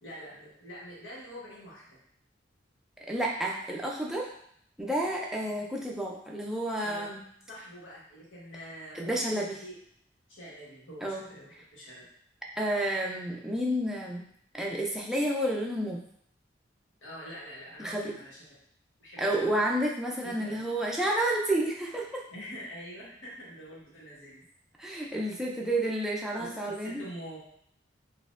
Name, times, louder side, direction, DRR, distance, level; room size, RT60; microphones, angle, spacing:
voice 1, 0.0-2.0 6.8-7.1 7.5-9.8 10.3-12.1 17.0-18.4 19.0-19.4 20.2-20.6 22.3-24.4 26.4-27.4, equal, 85° left, -7 dB, 1.5 m, -45 dB
voice 2, 3.1-4.3 4.8-7.2 8.9-9.6 11.0-11.2 12.6-14.2 14.5-16.0 17.8-18.1 19.2-22.2 24.8-27.0, right 1 dB, ahead, -2 dB, 0.4 m, -30 dB
4.1 x 2.6 x 2.5 m, 0.67 s
head